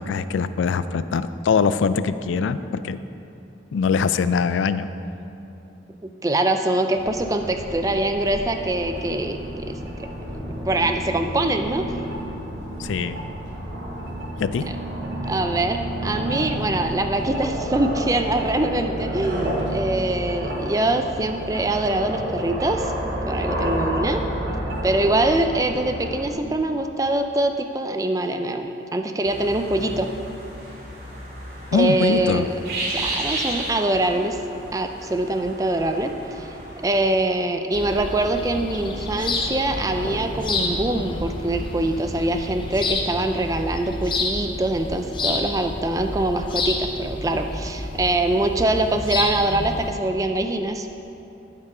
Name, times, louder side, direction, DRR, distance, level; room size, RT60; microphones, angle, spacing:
voice 1, 0.0-3.0 3.7-4.9 12.8-13.2 14.4-14.7 31.7-32.4, left 5 dB, 90° left, 13 dB, 0.3 m, -22 dB
voice 2, 6.2-10.1 10.3-12.0 15.3-24.2 24.8-30.1 31.7-32.6 32.9-34.4 34.7-50.9, right 2 dB, 20° right, 6 dB, 0.4 m, -24 dB
sound 1, 6.9-26.3, equal, 85° right, 1.8 m, -30 dB
sound 2, 29.2-37.2, right 1 dB, 60° right, 2.3 m, -33 dB
sound 3, 37.7-49.9, left 2 dB, 25° left, 0.7 m, -29 dB
12.0 x 5.6 x 4.8 m, 2.9 s
head